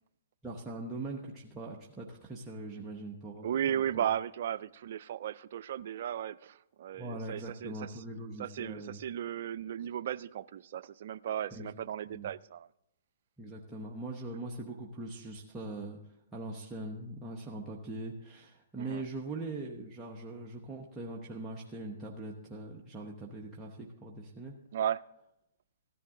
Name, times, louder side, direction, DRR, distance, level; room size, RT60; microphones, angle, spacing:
voice 1, 0.4-4.1 7.0-9.0 11.5-11.7 12.1-12.3 13.4-16.0 16.3-24.5, right 2 dB, 15° right, -3 dB, 1.1 m, -41 dB
voice 2, 3.4-7.9 8.4-12.7 18.8-19.0 24.7-25.0, right 10 dB, 60° right, 15 dB, 0.4 m, -35 dB
15.5 x 10.5 x 3.8 m, 0.81 s
hypercardioid pair, 140°, 0 cm